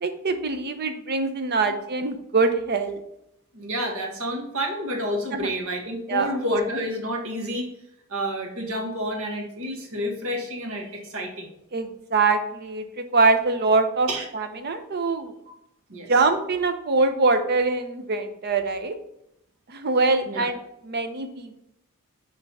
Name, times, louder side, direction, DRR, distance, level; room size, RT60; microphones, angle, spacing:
voice 1, 0.0-3.0 5.3-5.5 6.1-6.3 11.7-14.1 14.3-15.3 16.1-19.0 19.7-20.6 20.8-21.6, right 3 dB, 50° right, 8 dB, 0.7 m, -23 dB
voice 2, 3.5-7.7 8.1-11.5 14.1-14.2 15.9-16.1 20.3-20.5, equal, 65° right, 1 dB, 1.5 m, -29 dB
6.7 x 3.4 x 5.4 m, 0.81 s
head